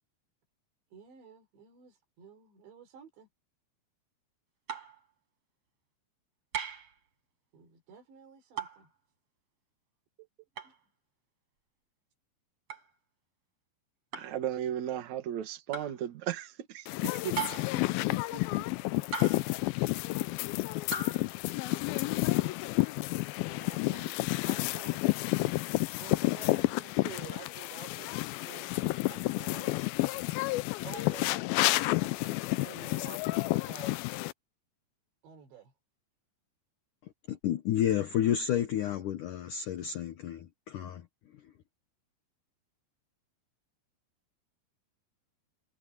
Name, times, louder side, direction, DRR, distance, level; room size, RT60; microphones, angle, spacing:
voice 1, 0.9-3.3 7.5-8.9 10.2-10.3 10.6-10.7 17.7-18.6 23.5-25.2 26.0-28.1 28.4-29.8 30.1-30.2 30.8-31.4 32.0-34.0 35.2-35.7, right 7 dB, 90° right, 6.3 m, -50 dB
sound 1, 4.7-5.0 6.5-6.9 8.6-8.9 10.6-10.8 12.7-12.9 14.1-14.4 15.7-16.0 17.4-17.8 19.1-19.6 20.9-21.2, right 5 dB, 35° right, 5.4 m, -37 dB
voice 2, 14.1-17.4, right 11 dB, 55° right, 2.5 m, -35 dB
sound 2, 16.9-34.3, left 20 dB, 90° left, 2.1 m, -30 dB
voice 3, 37.3-41.0, left 10 dB, 70° left, 2.0 m, -30 dB
omnidirectional pair, 5.0 m